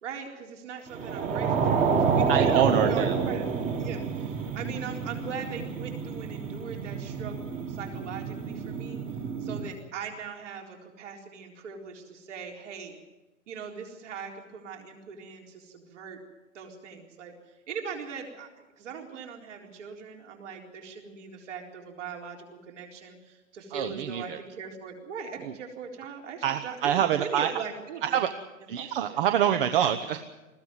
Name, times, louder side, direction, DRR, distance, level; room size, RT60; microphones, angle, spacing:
voice 1, 0.0-9.0 9.4-13.0 13.5-16.2 16.5-28.2 28.8-29.2, right 6 dB, 60° right, 2 dB, 4.2 m, -40 dB
sound 1, 0.9-9.7, right 5 dB, 20° right, 1.8 m, -28 dB
voice 2, 2.3-3.3 23.7-24.4 25.4-25.5 26.4-27.5 28.0-28.3 28.7-30.2, right 10 dB, 40° right, 8 dB, 1.1 m, -26 dB
20.5 x 15.5 x 9.6 m, 1.1 s
hypercardioid pair, 135°, 41 cm